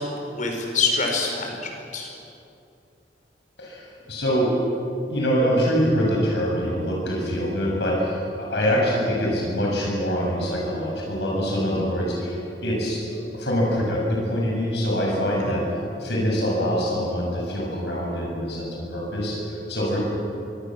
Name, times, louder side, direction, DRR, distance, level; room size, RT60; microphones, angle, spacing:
voice 1, 0.0-2.1 8.6-8.7 15.4-15.6, left 4 dB, 45° left, 2 dB, 5.4 m, -26 dB
voice 2, 3.6-4.6 5.1-13.0 13.3-15.6 16.0-19.4 19.7-20.0, equal, 70° left, -3 dB, 7.2 m, -24 dB
25.5 x 25.0 x 7.7 m, 2.7 s
head